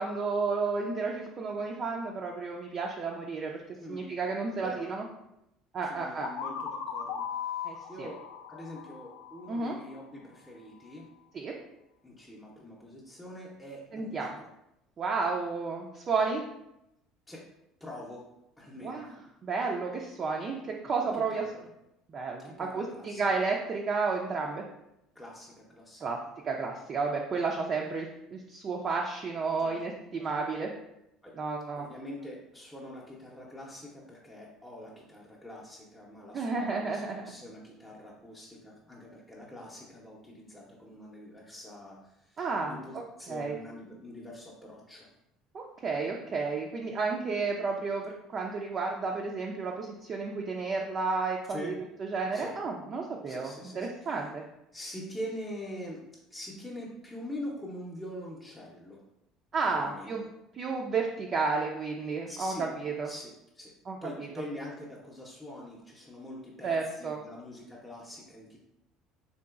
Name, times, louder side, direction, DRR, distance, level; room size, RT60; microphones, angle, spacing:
voice 1, 0.0-3.6 3.9-5.0 5.7-6.3 7.6-8.1 9.5-9.8 11.3-11.6 13.9-14.4 15.0-16.4 18.8-19.1 19.4-21.4 22.1-24.6 26.0-26.2 26.4-30.7 31.4-31.9 36.3-37.2 42.4-42.7 43.3-43.6 45.5-51.7 52.0-54.5 59.5-60.2 60.5-63.1 63.9-64.3 66.6-67.2, right 4 dB, 40° right, 0 dB, 0.4 m, -32 dB
voice 2, 3.8-4.1 4.6-4.9 5.8-8.2 8.5-11.1 12.0-14.5 17.3-17.4 17.8-18.3 18.6-19.1 21.0-21.6 22.4-23.3 25.1-26.1 29.6-29.8 30.1-30.3 31.2-31.4 31.8-42.4 42.7-45.1 51.5-51.8 52.3-52.5 53.3-54.1 54.7-56.0 56.3-59.0 59.7-60.3 62.3-62.7 63.0-63.7 64.0-68.6, left 1 dB, 5° left, -5 dB, 0.7 m, -44 dB
sound 1, 6.2-10.0, left 7 dB, 65° left, 0.4 m, -38 dB
3.7 x 2.8 x 2.4 m, 0.85 s
hypercardioid pair, 60°, 0 cm